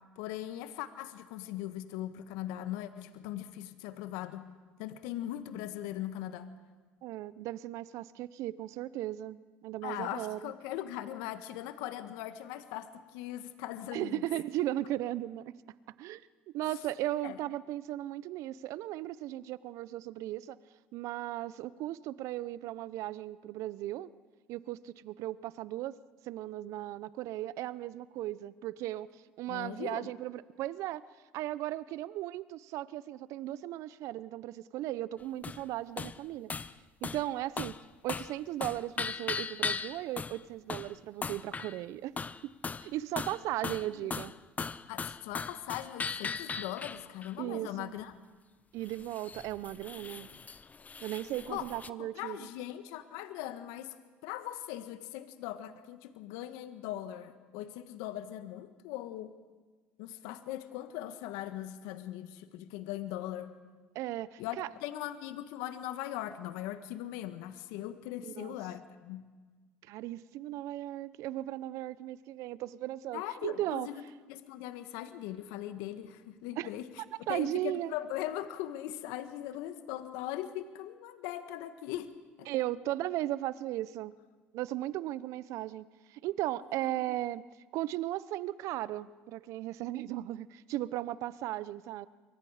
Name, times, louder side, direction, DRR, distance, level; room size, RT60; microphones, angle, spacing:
voice 1, 0.2-4.4 4.8-6.5 9.8-14.2 16.7-16.8 17.2-17.4 29.5-30.1 43.7-44.1 44.9-48.1 51.5-51.7 52.0-59.4 60.0-63.5 64.4-69.3 73.1-74.0 74.3-77.0 77.3-82.5, left 13 dB, 75° left, 10 dB, 1.5 m, -40 dB
voice 2, 7.0-10.5 13.9-15.5 16.0-16.2 16.5-20.6 20.9-24.1 24.5-25.9 26.3-29.1 29.4-31.0 31.3-36.5 37.0-37.8 38.0-42.1 42.8-44.3 47.4-47.9 48.7-50.3 51.0-52.5 63.9-64.7 68.2-68.6 69.9-73.9 76.6-76.7 77.3-77.9 82.5-84.1 84.5-85.8 86.1-87.4 87.7-92.1, right 15 dB, 65° right, 17 dB, 0.8 m, -36 dB
sound 1, 35.4-35.6 36.0-36.2 36.5-36.7 37.0-37.3 37.6-37.8 38.1-38.4 38.6-40.4 40.7-40.9 41.2-41.8 42.2-42.9 43.2-47.3 48.9-51.9, left 5 dB, 25° left, 0.8 m, -38 dB
27.5 x 23.5 x 5.0 m, 1.4 s
hypercardioid pair, 70°, 6 cm